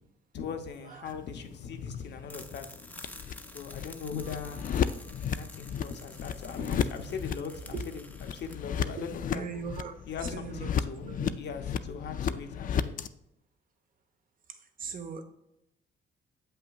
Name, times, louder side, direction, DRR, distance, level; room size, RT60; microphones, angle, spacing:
voice 1, 0.3-2.7 3.5-4.6 5.3-9.5 10.1-11.1 11.4-13.0, left 6 dB, 60° left, 6 dB, 0.8 m, -40 dB
voice 2, 0.8-1.2 7.7-7.8 8.5-8.6 9.0-9.1 9.3-10.8 11.0-11.4 14.5-15.2, right 6 dB, 45° right, 8 dB, 0.8 m, -40 dB
sound 1, 1.0-13.1, left 8 dB, 45° left, 0.4 m, -35 dB
sound 2, 2.3-8.6, left 1 dB, 10° left, 0.6 m, -50 dB
Piano, 4.2-6.4, right 2 dB, 85° right, 1.9 m, -62 dB
7.5 x 5.6 x 2.3 m, 0.85 s
cardioid pair, 90°, 20 cm